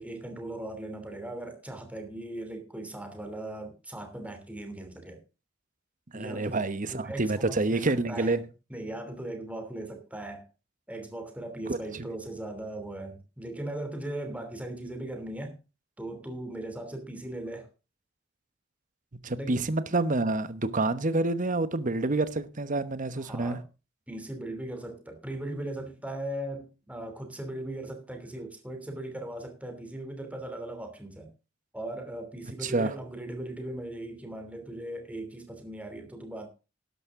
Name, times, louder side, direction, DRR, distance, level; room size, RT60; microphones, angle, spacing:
voice 1, 0.0-5.2 6.1-6.6 6.9-7.8 8.1-8.4 8.7-10.5 10.9-15.6 16.0-17.7 19.4-19.6 23.2-23.6 24.1-31.3 31.7-36.5, right 1 dB, 5° right, 2.9 m, -38 dB
voice 2, 6.1-8.4 11.7-12.1 19.2-23.6 32.6-32.9, right 2 dB, 40° right, 1.0 m, -28 dB
12.5 x 11.0 x 3.7 m
head